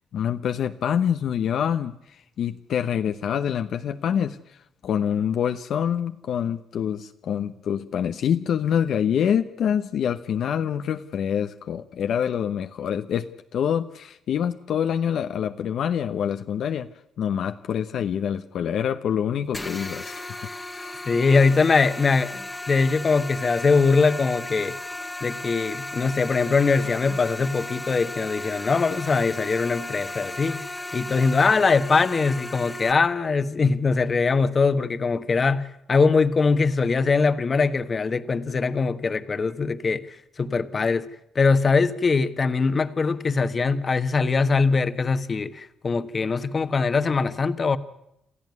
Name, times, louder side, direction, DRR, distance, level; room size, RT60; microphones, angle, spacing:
voice 1, 0.1-16.9 17.2-20.3 20.7-21.0, left 8 dB, 70° left, 8 dB, 0.8 m, -26 dB
sound 1, 19.5-32.9, left 2 dB, 15° left, 1.6 m, -35 dB
voice 2, 21.0-22.3 22.7-24.7 25.2-30.6 30.9-40.0 40.4-41.1 41.3-47.8, left 4 dB, 35° left, 11 dB, 1.3 m, -22 dB
27.5 x 14.0 x 9.5 m, 0.80 s
cardioid pair, 90°, 0 cm